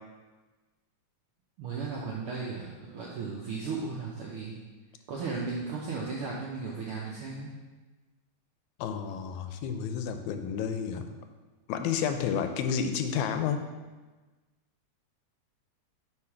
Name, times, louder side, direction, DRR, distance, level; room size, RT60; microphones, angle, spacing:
voice 1, 1.6-4.6 5.1-7.5, right 4 dB, 80° right, -3 dB, 1.2 m, -35 dB
voice 2, 8.8-11.1 11.7-13.7, left 7 dB, 85° left, 7 dB, 1.9 m, -30 dB
4.8 x 4.5 x 5.7 m, 1.3 s
omnidirectional pair, 3.3 m